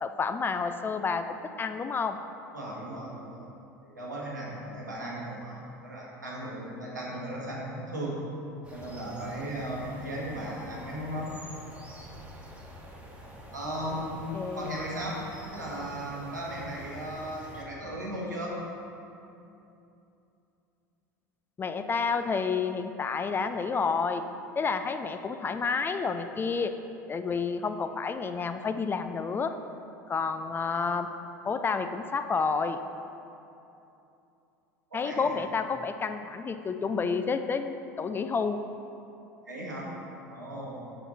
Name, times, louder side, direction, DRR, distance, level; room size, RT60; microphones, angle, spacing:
voice 1, 0.0-2.2 13.9-14.0 14.3-14.8 21.6-24.2 24.6-26.7 27.1-29.5 30.1-31.1 31.4-32.8 34.9-38.6, left 5 dB, 25° left, 8 dB, 0.4 m, -30 dB
voice 2, 2.5-3.4 3.8-8.2 8.7-11.3 13.5-14.2 14.5-15.2 15.5-18.5 34.9-35.4 39.4-39.9 40.3-40.8, right 1 dB, 90° right, -5 dB, 1.5 m, -36 dB
sound 1, 8.6-17.6, equal, 10° right, 1.3 m, -47 dB
6.9 x 5.7 x 4.2 m, 2.8 s
figure-of-eight pair, 70°, 9 cm